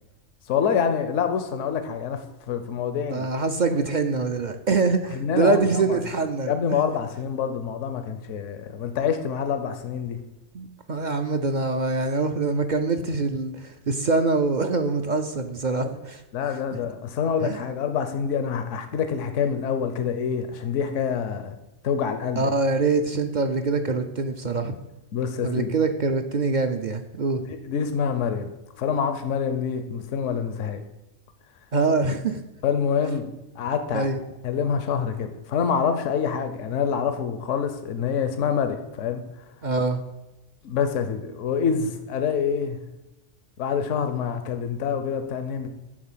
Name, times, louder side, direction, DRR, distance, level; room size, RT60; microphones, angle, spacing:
voice 1, 0.5-3.3 5.1-6.0 6.4-10.2 16.3-21.6 21.8-22.5 25.1-25.7 27.5-28.5 28.8-30.8 32.6-33.3 33.6-34.1 34.4-39.2 40.6-42.8 43.6-45.7, left 7 dB, 75° left, 8 dB, 1.0 m, -26 dB
voice 2, 3.1-6.8 10.5-16.2 17.4-17.6 22.4-24.7 25.4-27.4 31.7-32.4 33.9-34.2 39.6-40.0, right 3 dB, 50° right, 7 dB, 0.6 m, -24 dB
11.0 x 3.9 x 7.3 m, 0.98 s
omnidirectional pair, 1.3 m